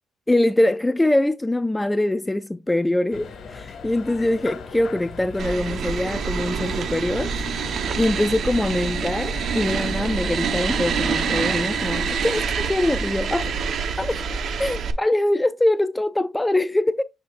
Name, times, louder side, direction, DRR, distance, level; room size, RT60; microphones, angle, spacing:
voice 1, 0.3-7.3 8.0-13.5 14.0-14.3 14.6-17.0, left 1 dB, 10° left, 0.3 m, -23 dB
sound 1, 3.1-12.0, left 5 dB, 65° left, 1.7 m, -39 dB
sound 2, 5.4-14.9, right 6 dB, 65° right, 0.9 m, -26 dB
9.5 x 4.2 x 2.4 m
cardioid pair, 90°, 0 cm